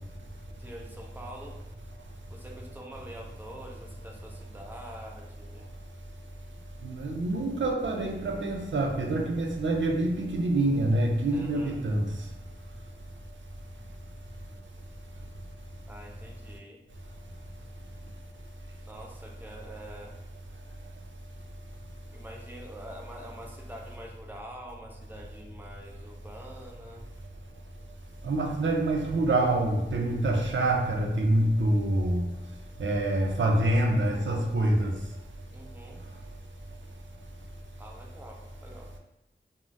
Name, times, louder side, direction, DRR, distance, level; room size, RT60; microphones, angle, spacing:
voice 1, 0.5-1.6 2.3-5.7 11.3-11.8 15.9-16.8 18.8-20.2 22.1-27.1 35.5-36.0 37.8-38.9, right 1 dB, 10° right, 0.5 m, -45 dB
voice 2, 6.8-12.1 28.2-32.3 32.8-35.0, right 1 dB, 90° right, 0.4 m, -26 dB
2.5 x 2.0 x 3.2 m
wide cardioid pair, 60°, 19 cm